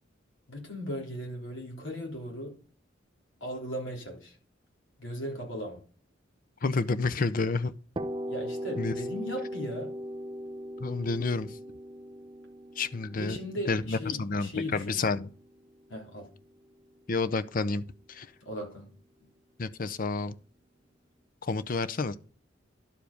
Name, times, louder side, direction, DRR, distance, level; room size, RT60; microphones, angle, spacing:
voice 1, 0.5-2.5 3.4-4.4 5.0-5.8 8.3-9.9 13.1-15.0 15.9-16.3 18.4-19.0, equal, 80° left, 3.4 m, -37 dB
voice 2, 6.6-7.7 8.8-8.9 10.8-11.5 12.8-13.4 13.7-15.3 17.1-18.3 19.6-20.3 21.4-22.2, left 3 dB, 45° left, 0.6 m, -29 dB
sound 1, 8.0-15.7, equal, 25° right, 0.7 m, -39 dB
11.5 x 4.9 x 5.2 m
head